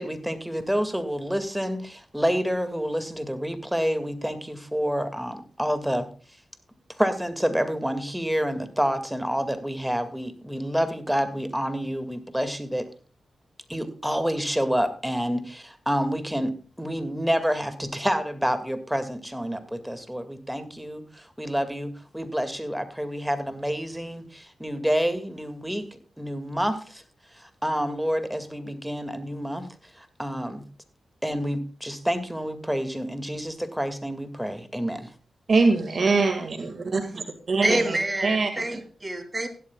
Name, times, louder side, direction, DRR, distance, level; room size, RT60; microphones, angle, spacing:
voice 1, 0.0-6.1 7.0-12.9 13.7-25.9 26.2-27.0 27.3-29.7 29.9-30.6 31.2-35.1, equal, 5° right, 9 dB, 2.1 m, -28 dB
voice 2, 35.5-37.8 38.2-38.5, right 3 dB, 55° right, 6 dB, 2.0 m, -23 dB
voice 3, 37.6-39.5, right 1 dB, 20° right, 6 dB, 3.2 m, -27 dB
16.0 x 12.0 x 2.4 m, 0.40 s
cardioid pair, 60°, 0 cm